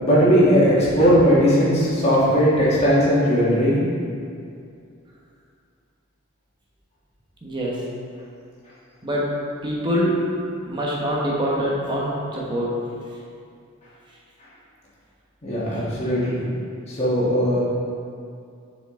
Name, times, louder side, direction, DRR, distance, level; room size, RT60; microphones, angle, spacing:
voice 1, 0.0-3.8 15.4-16.4 16.9-17.6, equal, 30° left, -9 dB, 1.6 m, -18 dB
voice 2, 7.4-7.8 9.0-9.3 9.6-10.2 10.7-12.7, equal, 20° right, -4 dB, 1.1 m, -24 dB
6.8 x 5.0 x 3.7 m, 2.4 s
head